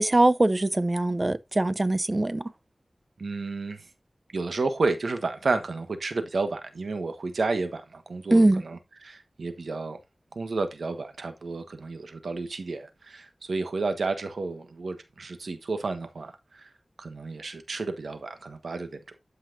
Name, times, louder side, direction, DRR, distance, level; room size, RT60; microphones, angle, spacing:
voice 1, 0.0-2.4 8.3-8.6, right 2 dB, 30° right, 0.6 m, -22 dB
voice 2, 3.2-3.9 4.3-10.0 10.3-16.7 17.0-19.0, right 3 dB, 90° right, 1.4 m, -31 dB
12.0 x 5.7 x 2.6 m
wide cardioid pair, 85°, 0 cm